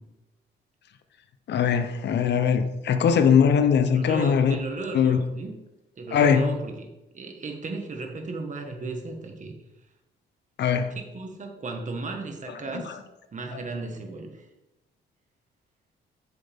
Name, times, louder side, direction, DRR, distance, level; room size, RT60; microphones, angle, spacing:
voice 1, 1.5-4.6 4.9-5.2 6.1-6.5 10.6-10.9 12.7-12.9, left 7 dB, 60° left, 0.9 m, -21 dB
voice 2, 3.9-5.5 6.0-6.9 7.1-9.5 10.9-13.0 13.3-14.4, right 3 dB, 40° right, 1.7 m, -35 dB
8.5 x 6.8 x 3.7 m
cardioid pair, 90°, 20 cm